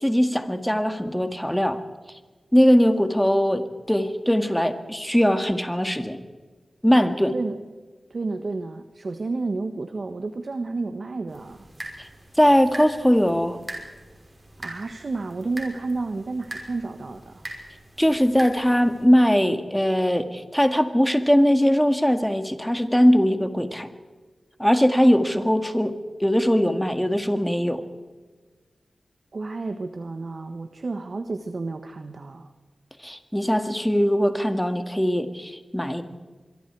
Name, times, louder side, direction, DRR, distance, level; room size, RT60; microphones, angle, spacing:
voice 1, 0.0-1.8 2.5-6.2 6.8-7.3 12.0-12.1 12.4-13.6 18.0-23.9 24.6-27.8 33.0-36.0, equal, 5° left, 7 dB, 2.0 m, -20 dB
voice 2, 8.1-11.7 14.6-17.4 29.3-32.5, right 3 dB, 60° right, 8 dB, 1.3 m, -31 dB
sound 1, 11.3-19.1, right 1 dB, 35° right, 5.7 m, -41 dB
26.0 x 23.0 x 4.7 m, 1.3 s
wide cardioid pair, 70°, 0 cm